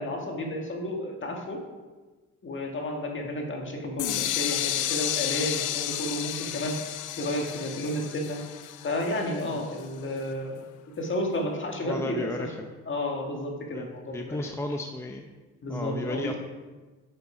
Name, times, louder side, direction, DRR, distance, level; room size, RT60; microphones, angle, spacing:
voice 1, 0.0-1.7 2.4-8.4 8.8-10.6 11.0-12.5 12.9-14.5 15.6-16.4, left 1 dB, 40° left, 2 dB, 1.9 m, -32 dB
sound 1, 4.0-9.8, left 12 dB, 85° left, 0.6 m, -32 dB
voice 2, 11.8-12.5 13.7-15.2 15.7-16.3, left 1 dB, 10° left, 3 dB, 0.7 m, -34 dB
8.5 x 6.9 x 4.9 m, 1.3 s
cardioid pair, 90°, 30 cm